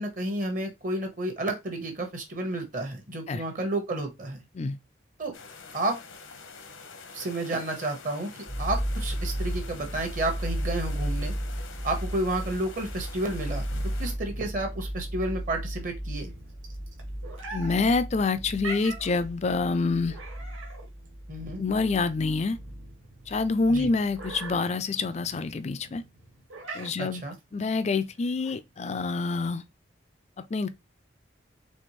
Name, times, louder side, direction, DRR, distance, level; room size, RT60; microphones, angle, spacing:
voice 1, 0.0-4.4 5.2-5.3 5.7-6.0 7.1-8.3 8.6-11.3 11.8-13.6 14.0-16.3 21.3-21.6 23.7-23.9 27.0-27.3, right 2 dB, 40° right, 1.0 m, -31 dB
sound 1, 5.3-14.1, left 4 dB, 85° left, 0.9 m, -46 dB
sound 2, 8.5-24.6, equal, 65° right, 1.4 m, -35 dB
sound 3, 13.6-29.5, right 3 dB, 90° right, 1.7 m, -45 dB
voice 2, 17.5-20.2 21.6-22.6 23.3-26.0 26.7-27.2 27.5-29.6 30.5-30.7, left 3 dB, 35° left, 0.4 m, -27 dB
4.3 x 3.4 x 3.0 m
head